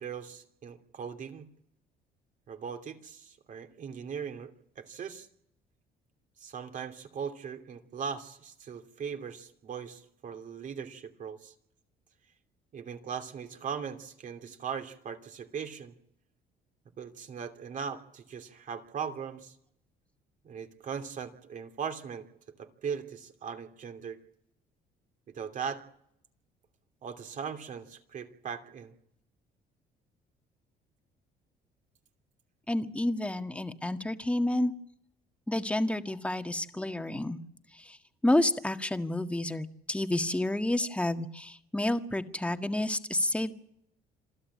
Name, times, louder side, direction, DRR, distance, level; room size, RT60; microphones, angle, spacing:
voice 1, 0.0-1.5 2.5-5.3 6.4-11.5 12.7-15.9 17.0-19.6 20.4-22.3 22.6-24.2 25.3-25.8 27.0-29.0, right 7 dB, 50° right, 5 dB, 2.9 m, -39 dB
voice 2, 32.7-34.7 35.5-37.4 37.8-38.0 38.2-43.5, left 1 dB, 5° left, 7 dB, 1.7 m, -29 dB
27.0 x 15.0 x 8.6 m, 0.75 s
cardioid pair, 110°, 17 cm